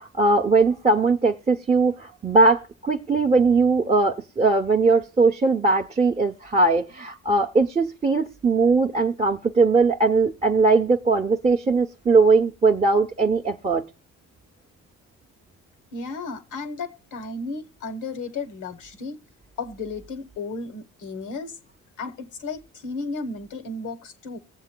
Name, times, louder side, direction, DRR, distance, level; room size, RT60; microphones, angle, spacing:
voice 1, 0.0-13.8, right 3 dB, 20° right, 0.6 m, -20 dB
voice 2, 15.9-19.2 19.6-21.6 22.0-24.4, left 3 dB, 85° left, 1.1 m, -34 dB
19.5 x 7.5 x 2.2 m
cardioid pair, 90°, 30 cm